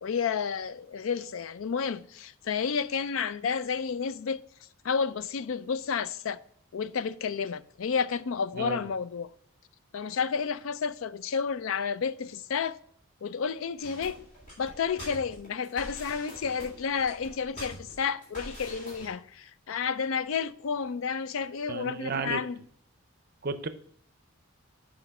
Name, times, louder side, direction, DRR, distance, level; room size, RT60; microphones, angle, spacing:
voice 1, 0.0-4.4 4.8-6.4 6.7-9.3 9.9-12.8 13.2-14.2 14.6-22.6, left 6 dB, 70° left, 0.4 m, -31 dB
sound 1, 13.8-19.1, equal, 35° left, 3.5 m, -44 dB
voice 2, 21.7-22.4 23.4-23.7, right 4 dB, 45° right, 0.5 m, -33 dB
7.9 x 5.1 x 4.7 m
head